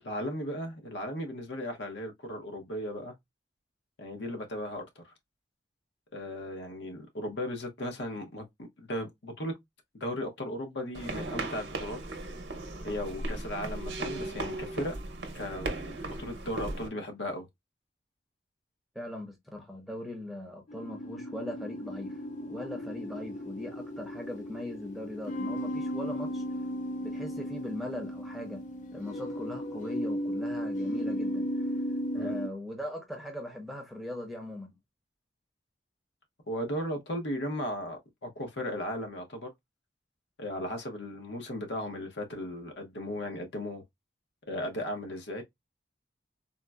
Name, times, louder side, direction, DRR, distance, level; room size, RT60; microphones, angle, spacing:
voice 1, 0.0-3.1 4.0-5.0 6.1-8.5 8.8-9.6 9.9-12.0 12.8-14.9 15.3-15.7 16.2-17.5 32.1-32.3 36.5-39.5 40.4-43.8 44.5-45.4, left 1 dB, 75° left, 0.8 m, -36 dB
sound 1, 10.9-16.9, right 2 dB, 70° right, 0.7 m, -37 dB
voice 2, 18.9-26.4 27.0-28.6 28.9-31.7 32.1-34.7, left 1 dB, ahead, 0.6 m, -40 dB
sound 2, 20.7-32.5, equal, 40° left, 0.3 m, -35 dB
3.9 x 2.0 x 2.2 m
head